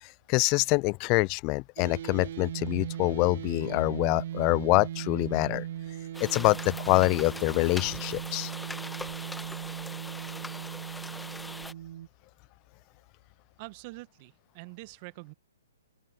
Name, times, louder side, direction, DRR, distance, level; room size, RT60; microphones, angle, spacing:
voice 1, 0.0-5.7 6.2-8.5, left 28 dB, 30° left, 0.3 m, -25 dB
sound 1, 1.8-12.1, right 12 dB, 55° right, 0.9 m, -38 dB
sound 2, 6.1-11.7, left 2 dB, 5° left, 1.4 m, -41 dB
voice 2, 13.6-15.3, right 26 dB, 35° right, 1.1 m, -45 dB
open air
figure-of-eight pair, 130°, 0 cm